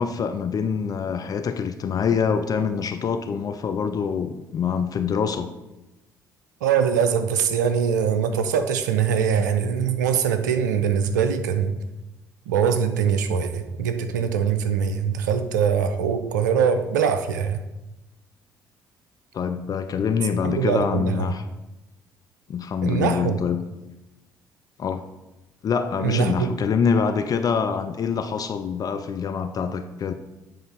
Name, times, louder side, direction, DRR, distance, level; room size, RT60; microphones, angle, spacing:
voice 1, 0.0-5.5 19.3-21.4 22.5-23.6 24.8-25.0 25.6-30.1, left 6 dB, 40° left, 0.4 m, -25 dB
voice 2, 6.6-11.8 12.5-17.6 20.4-21.3 22.8-23.4 26.0-26.5, right 7 dB, 75° right, 0.4 m, -22 dB
7.9 x 3.6 x 4.6 m
figure-of-eight pair, 45°, 10 cm